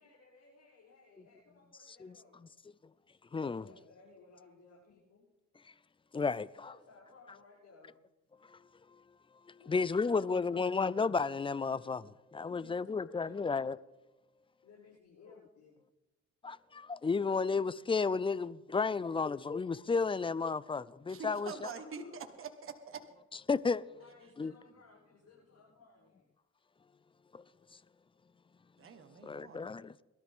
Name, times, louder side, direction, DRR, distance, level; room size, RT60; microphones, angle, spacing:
voice 1, 0.0-2.4 3.6-5.3 6.6-7.9 9.6-10.8 12.5-13.5 14.6-15.8 21.2-22.2 23.9-26.2, left 4 dB, 60° left, 6.9 m, -59 dB
voice 2, 3.3-3.7 6.1-6.6 8.5-8.6 9.7-13.8 16.4-21.7 23.5-23.9 24.4-24.5 27.3-27.4 29.2-29.9, left 4 dB, 20° left, 0.4 m, -32 dB
voice 3, 21.1-23.0 28.8-29.6, right 5 dB, 45° right, 1.4 m, -45 dB
21.5 x 13.0 x 3.7 m
cardioid pair, 90°, 30 cm